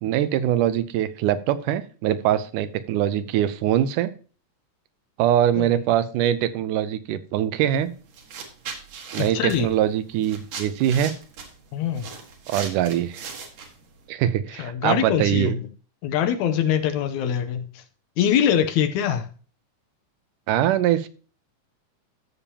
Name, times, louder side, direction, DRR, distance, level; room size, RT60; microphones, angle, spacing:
voice 1, 0.0-4.1 5.2-7.9 9.1-11.1 12.5-13.3 14.1-15.6 20.5-21.1, right 11 dB, 85° right, 2.2 m, -23 dB
sound 1, 7.7-7.9 8.1-14.0, right 5 dB, 65° right, 2.7 m, -38 dB
voice 2, 9.2-9.7 11.7-12.1 14.6-15.6 16.0-17.8 18.2-19.3, left 9 dB, 75° left, 2.0 m, -23 dB
13.5 x 7.1 x 2.8 m
omnidirectional pair, 3.6 m